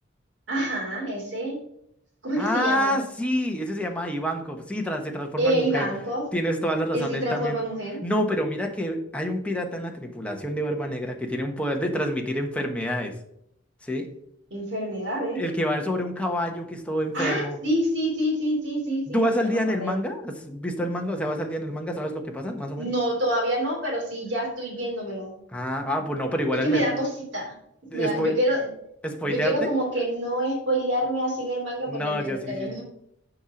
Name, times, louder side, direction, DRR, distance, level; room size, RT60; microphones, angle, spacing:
voice 1, 0.5-1.6 2.2-2.9 5.4-6.2 6.9-8.0 14.5-15.4 17.1-19.9 22.8-25.3 26.6-27.5 27.9-28.7 29.3-32.8, right 1 dB, 65° right, 0 dB, 3.1 m, -27 dB
voice 2, 2.4-5.9 6.3-7.6 8.0-13.1 13.8-14.1 15.3-17.6 19.1-22.9 25.5-26.9 27.9-28.3 29.0-29.7 31.9-32.8, equal, 5° left, 2 dB, 1.1 m, -27 dB
7.0 x 5.6 x 5.1 m, 0.73 s
head